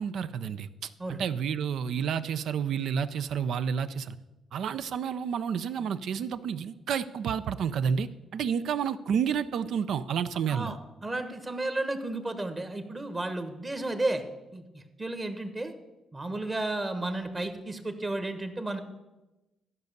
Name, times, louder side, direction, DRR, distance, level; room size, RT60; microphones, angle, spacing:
voice 1, 0.0-4.2 4.5-10.7, right 7 dB, 70° right, 13 dB, 0.5 m, -30 dB
voice 2, 10.5-14.2 14.5-15.7 16.1-18.8, right 2 dB, 25° right, 8 dB, 1.2 m, -33 dB
13.0 x 5.4 x 6.7 m, 1.1 s
cardioid pair, 90°, 0 cm